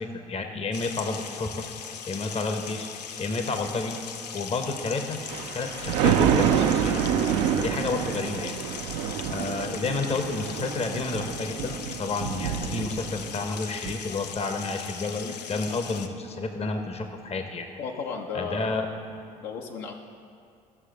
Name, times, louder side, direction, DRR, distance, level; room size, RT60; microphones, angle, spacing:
voice 1, 0.0-1.6 2.1-2.9 3.2-4.0 4.3-5.2 5.5-7.0 7.5-8.5 9.3-17.7 18.3-18.9, left 3 dB, 30° left, 6 dB, 1.0 m, -30 dB
sound 1, 0.7-16.1, left 7 dB, 85° left, 0.4 m, -39 dB
Thunder, 5.1-13.4 13.8-13.9, right 8 dB, 70° right, 0.6 m, -27 dB
voice 2, 17.8-18.9 19.4-19.9, left 5 dB, 65° left, 1 dB, 1.0 m, -34 dB
15.0 x 6.4 x 3.9 m, 2.3 s
figure-of-eight pair, 55°, 20 cm